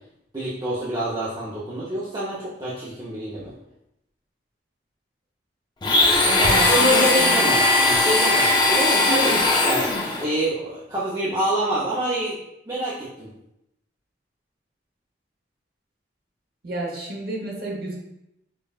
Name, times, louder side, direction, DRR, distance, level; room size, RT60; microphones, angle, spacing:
voice 1, 0.3-3.5 6.4-9.3 9.6-9.9 10.2-12.4 12.7-13.3, right 1 dB, 20° right, -8 dB, 0.6 m, -26 dB
Domestic sounds home sounds, 5.8-10.2, left 2 dB, 25° left, 0.4 m, -19 dB
voice 2, 6.2-7.3 9.1-9.4 16.6-17.9, right 1 dB, 55° right, -2 dB, 0.8 m, -29 dB
5.2 x 2.3 x 2.3 m, 0.83 s
head